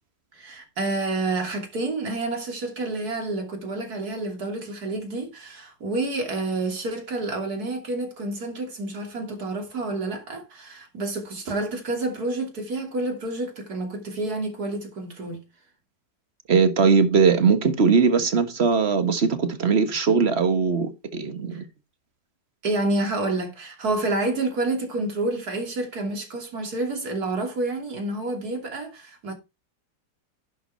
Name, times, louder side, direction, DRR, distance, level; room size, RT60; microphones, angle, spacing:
voice 1, 0.3-15.4 21.5-21.6 22.6-29.3, right 2 dB, 55° right, 3.3 m, -29 dB
voice 2, 16.5-21.6, right 5 dB, 40° right, 1.6 m, -20 dB
11.5 x 5.5 x 4.4 m
omnidirectional pair, 1.9 m